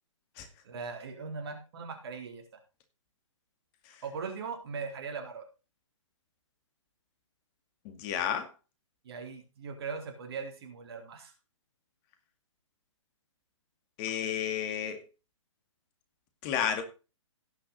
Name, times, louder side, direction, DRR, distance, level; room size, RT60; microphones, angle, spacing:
voice 1, 0.6-2.4 4.0-5.4 9.0-11.3, right 5 dB, 55° right, 3 dB, 3.6 m, -39 dB
voice 2, 7.8-8.5 14.0-15.0 16.4-16.8, left 9 dB, 30° left, 8 dB, 2.2 m, -31 dB
17.0 x 6.0 x 4.0 m, 0.32 s
figure-of-eight pair, 130°, 16 cm